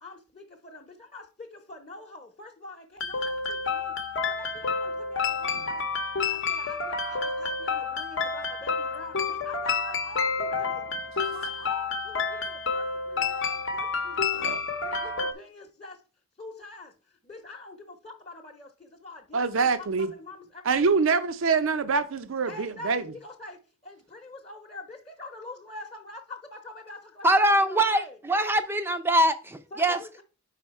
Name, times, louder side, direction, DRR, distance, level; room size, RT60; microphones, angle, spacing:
voice 1, 0.0-4.0 4.3-5.8 6.2-10.9 11.3-16.0 16.4-16.9 17.2-20.7 22.5-27.3 27.6-28.2 29.7-30.2, left 2 dB, 25° left, 0.9 m, -45 dB
sound 1, 3.0-15.3, left 4 dB, 60° left, 0.8 m, -29 dB
voice 2, 19.3-20.1 20.6-23.0, right 5 dB, 65° right, 0.5 m, -25 dB
voice 3, 27.2-30.0, right 1 dB, 10° right, 0.5 m, -23 dB
5.3 x 4.9 x 4.2 m
head